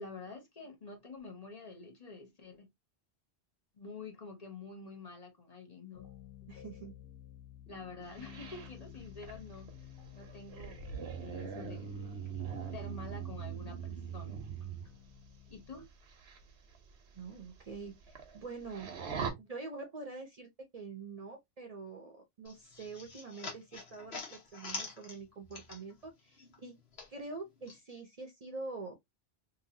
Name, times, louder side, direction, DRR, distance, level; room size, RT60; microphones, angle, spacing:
voice 1, 0.0-2.7 3.8-6.1 7.7-11.9 12.7-14.4 15.5-15.9, left 3 dB, 40° left, 0.8 m, -48 dB
sound 1, 5.9-15.9, left 11 dB, 60° left, 1.4 m, -53 dB
voice 2, 6.5-6.9 17.1-18.9 19.4-26.8 27.1-29.0, right 3 dB, 45° right, 0.6 m, -45 dB
sound 2, 8.1-14.9 16.0-16.4 16.7-16.8 17.4-17.5 17.7-18.4 18.7-19.3, right 7 dB, 90° right, 1.0 m, -41 dB
sound 3, 22.5-26.1 26.4-27.8, left 4 dB, 75° left, 1.3 m, -45 dB
2.9 x 2.7 x 2.6 m
omnidirectional pair, 1.1 m